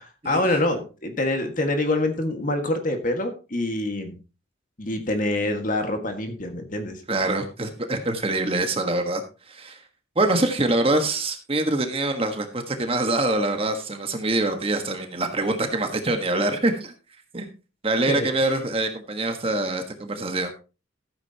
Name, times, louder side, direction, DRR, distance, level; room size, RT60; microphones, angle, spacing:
voice 1, 0.0-4.2 4.8-7.0 18.1-18.3, left 1 dB, 40° left, 5 dB, 1.7 m, -26 dB
voice 2, 7.1-9.2 9.5-9.8 10.1-16.9 17.3-17.5 17.8-20.5, right 2 dB, 30° right, 6 dB, 1.4 m, -24 dB
14.5 x 8.8 x 2.9 m, 0.32 s
head